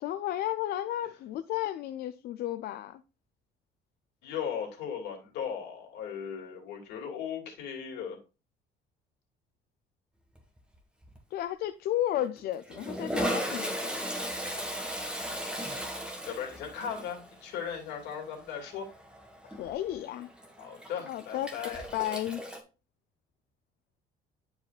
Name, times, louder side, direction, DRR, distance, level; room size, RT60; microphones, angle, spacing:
voice 1, 0.0-3.0 11.3-13.7 19.4-20.3 21.1-22.4, left 13 dB, 65° left, 0.5 m, -33 dB
voice 2, 4.2-8.2 16.3-18.9 20.6-21.9, left 7 dB, 85° left, 2.4 m, -37 dB
Toilet flush, 10.4-10.8 11.0-11.2 12.1-22.6, equal, 5° right, 1.7 m, -37 dB
10.0 x 4.8 x 2.4 m
cardioid pair, 110°, 17 cm